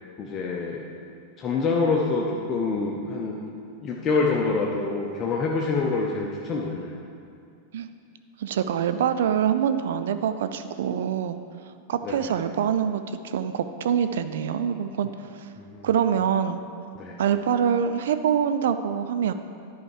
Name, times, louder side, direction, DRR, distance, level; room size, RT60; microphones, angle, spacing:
voice 1, 0.2-0.9 1.4-3.4 3.8-7.0 12.0-12.3 15.6-15.9 16.9-17.2, left 4 dB, 30° left, -1 dB, 0.7 m, -26 dB
voice 2, 8.4-11.4 11.9-15.5 15.8-16.6 17.2-19.3, right 8 dB, 60° right, 10 dB, 0.3 m, -25 dB
11.0 x 4.7 x 4.8 m, 2.4 s
figure-of-eight pair, 90°, 0 cm